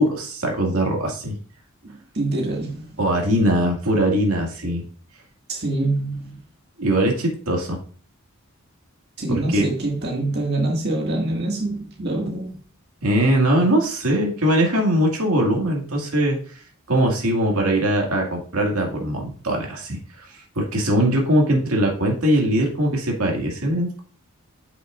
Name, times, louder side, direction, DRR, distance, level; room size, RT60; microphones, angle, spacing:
voice 1, 0.0-1.4 3.0-4.8 6.8-7.8 9.3-9.7 13.0-16.4 16.9-24.0, right 1 dB, 85° right, 2.0 m, -21 dB
voice 2, 2.1-2.9 5.5-6.3 9.2-12.6, right 2 dB, 50° right, 1.9 m, -25 dB
9.1 x 6.0 x 2.5 m
head